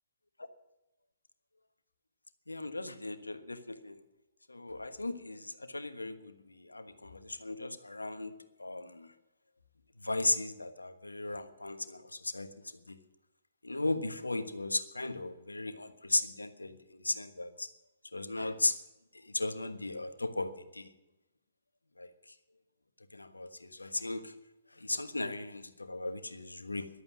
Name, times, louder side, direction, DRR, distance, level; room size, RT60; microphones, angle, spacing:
voice 1, 2.5-4.0 4.5-9.1 10.0-12.5 12.9-13.0 13.6-17.7 18.1-18.7 19.2-20.9 22.0-22.1 23.1-24.3 24.8-26.9, left 2 dB, 80° left, 9 dB, 1.3 m, -36 dB
14.5 x 11.5 x 6.3 m, 0.94 s
figure-of-eight pair, 120°, 0 cm